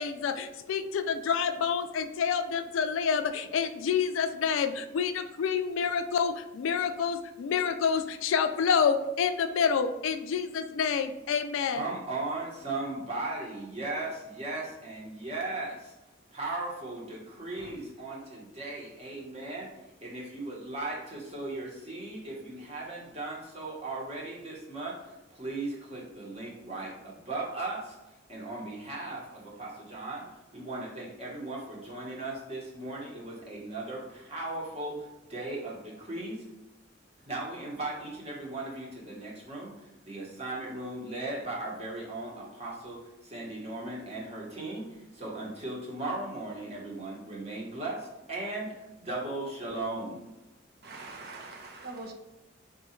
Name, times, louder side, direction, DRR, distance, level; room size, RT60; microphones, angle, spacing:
voice 1, 0.0-11.9, left 6 dB, 75° left, 9 dB, 0.3 m, -28 dB
voice 2, 11.7-15.9 16.3-19.7 20.0-28.0 28.3-30.2 30.5-36.5 37.2-50.2, right 2 dB, 30° right, -3 dB, 1.0 m, -37 dB
voice 3, 50.8-52.1, right 3 dB, 50° right, 2 dB, 0.5 m, -43 dB
3.7 x 2.3 x 4.3 m, 1.0 s
head